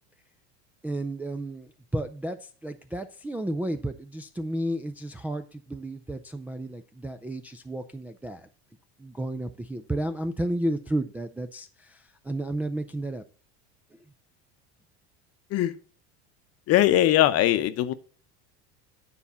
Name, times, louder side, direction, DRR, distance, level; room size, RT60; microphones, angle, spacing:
voice 1, 0.8-8.5 9.0-13.2, right 1 dB, 5° right, 4 dB, 0.3 m, -32 dB
voice 2, 16.7-17.9, left 13 dB, 45° left, 12 dB, 0.8 m, -21 dB
9.6 x 4.1 x 6.9 m, 0.40 s
supercardioid pair, 125°, 33 cm